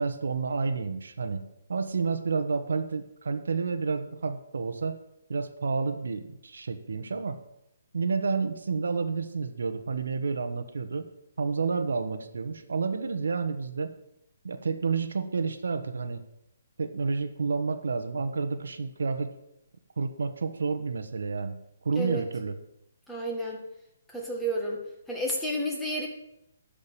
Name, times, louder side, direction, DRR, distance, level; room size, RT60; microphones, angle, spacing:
voice 1, 0.0-1.4 1.7-5.0 5.3-7.4 7.9-11.1 11.4-13.9 14.4-16.2 16.8-19.3 20.0-21.6 21.8-22.5, right 4 dB, 85° right, 8 dB, 1.4 m, -30 dB
voice 2, 23.1-23.6 24.1-24.8 25.1-26.1, equal, 5° left, -2 dB, 1.8 m, -31 dB
12.5 x 5.3 x 9.0 m, 0.83 s
hypercardioid pair, 170°, 0 cm